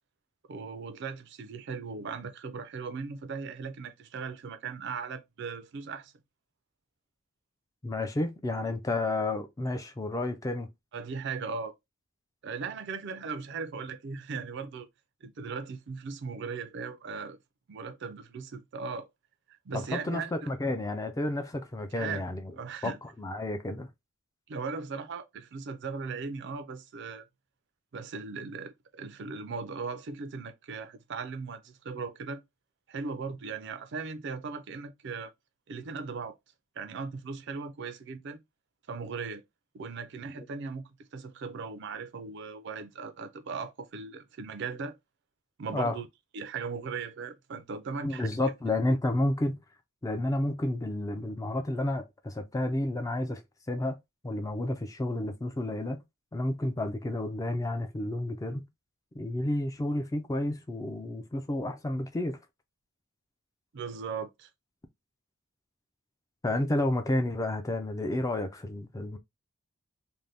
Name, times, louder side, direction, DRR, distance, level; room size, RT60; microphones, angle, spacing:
voice 1, 0.5-6.1 10.9-11.7 12.4-14.9 15.2-17.4 17.7-19.1 19.7-20.3 21.9-22.2 22.6-23.0 24.5-27.2 27.9-32.4 32.9-35.3 35.7-36.4 36.8-38.4 38.9-39.4 39.7-40.8 41.1-44.9 45.6-46.1 46.3-48.3 63.7-64.5, right 5 dB, 55° right, 0.4 m, -38 dB
voice 2, 7.8-10.7 19.7-22.4 22.8-22.9 23.2-23.9 40.4-40.5 45.7-46.0 48.0-49.6 50.0-53.4 53.7-54.0 54.2-56.0 56.3-58.7 59.1-62.4 66.4-69.2, left 1 dB, 15° left, 0.3 m, -31 dB
2.6 x 2.1 x 3.2 m
head